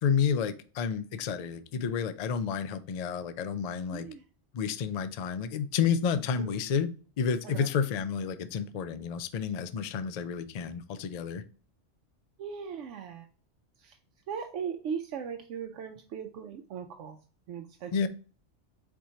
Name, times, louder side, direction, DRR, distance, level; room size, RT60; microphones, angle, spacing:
voice 1, 0.0-4.1 4.5-6.9 7.2-11.4 17.9-18.1, left 6 dB, 75° left, 11 dB, 0.3 m, -30 dB
voice 2, 3.9-4.2 6.4-6.6 7.4-7.7 12.4-13.3 13.8-14.0 14.3-17.2 17.5-18.1, right 7 dB, 80° right, 4 dB, 0.9 m, -38 dB
4.4 x 4.3 x 2.7 m, 0.39 s
omnidirectional pair, 1.2 m